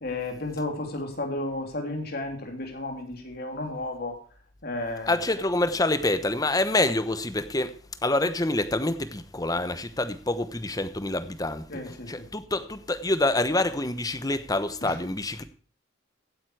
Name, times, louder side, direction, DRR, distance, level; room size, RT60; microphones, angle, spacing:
voice 1, 0.0-4.2 4.6-5.2 11.7-12.1 14.8-14.9, left 2 dB, 50° left, 3.4 m, -33 dB
voice 2, 5.1-7.7 8.0-15.4, left 2 dB, 20° left, 1.0 m, -27 dB
15.5 x 9.2 x 4.9 m
head